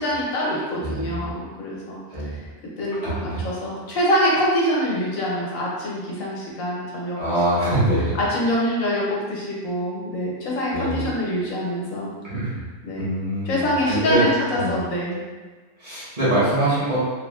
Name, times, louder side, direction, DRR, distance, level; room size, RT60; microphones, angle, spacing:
voice 1, 0.0-2.0 2.3-2.4 2.8-7.2 7.6-7.8 8.2-12.1 12.8-13.1 13.5-15.2, equal, 80° left, -5 dB, 1.1 m, -25 dB
voice 2, 0.8-1.3 2.1-2.4 3.0-3.4 7.2-8.1 10.7-11.1 12.2-12.6 13.0-14.2 14.5-14.7 15.8-17.0, right 1 dB, 40° right, -10 dB, 1.0 m, -24 dB
3.2 x 2.2 x 2.3 m, 1.4 s
omnidirectional pair, 1.3 m